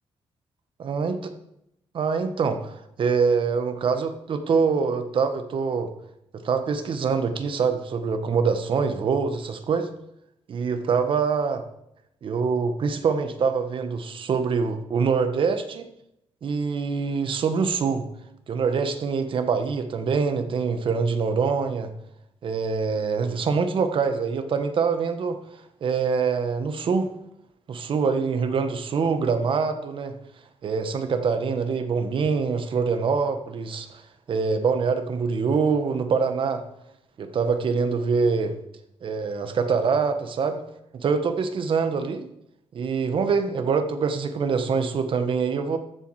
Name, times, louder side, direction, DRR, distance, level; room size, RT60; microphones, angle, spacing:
voice 1, 0.8-1.2 1.9-5.9 6.3-9.9 10.5-11.6 12.2-15.9 16.4-18.1 18.5-21.9 22.4-25.4 25.8-27.1 27.7-30.1 30.6-34.0 34.3-36.6 37.2-38.5 39.0-40.6 40.9-42.2 42.7-45.8, right 5 dB, 55° right, 8 dB, 1.4 m, -24 dB
14.0 x 7.4 x 4.9 m, 0.81 s
cardioid pair, 105°, 10 cm